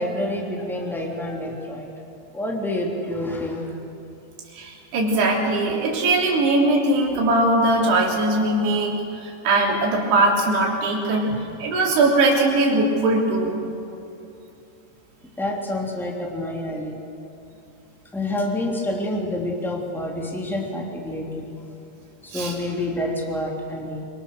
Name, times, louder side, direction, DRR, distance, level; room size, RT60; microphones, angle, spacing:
voice 1, 0.0-1.9 2.3-3.6 15.4-17.0 18.1-21.5 22.2-24.0, left 1 dB, ahead, -1 dB, 2.1 m, -28 dB
voice 2, 4.6-9.0 9.2-13.7 22.3-22.5, right 2 dB, 70° right, -2 dB, 5.4 m, -20 dB
25.5 x 24.0 x 6.7 m, 2.8 s
omnidirectional pair, 4.9 m